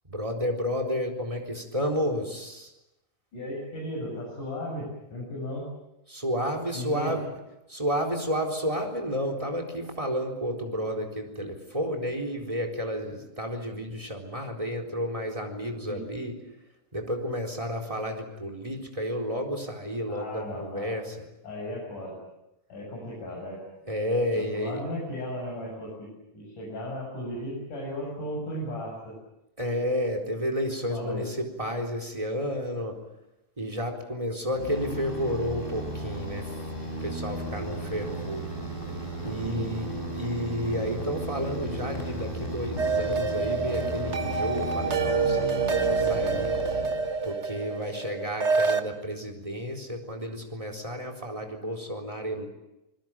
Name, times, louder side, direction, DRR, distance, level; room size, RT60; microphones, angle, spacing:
voice 1, 0.1-2.7 6.1-7.3 7.7-16.4 16.9-21.3 23.9-24.8 29.6-33.0 33.6-36.6 37.0-38.5 39.2-46.5 47.2-52.5, equal, 10° right, 5 dB, 3.9 m, -31 dB
voice 2, 3.3-5.7 6.7-7.1 15.9-16.0 20.1-20.9 21.4-22.2 22.7-23.6 24.3-26.1 26.3-29.1 30.9-31.2 39.5-39.7, left 1 dB, 85° left, -3 dB, 9.1 m, -35 dB
sound 1, 34.5-47.4, right 1 dB, 15° left, 6.3 m, -35 dB
sound 2, 42.8-48.8, right 4 dB, 55° right, 0.7 m, -27 dB
27.0 x 21.5 x 9.0 m, 0.90 s
omnidirectional pair, 3.6 m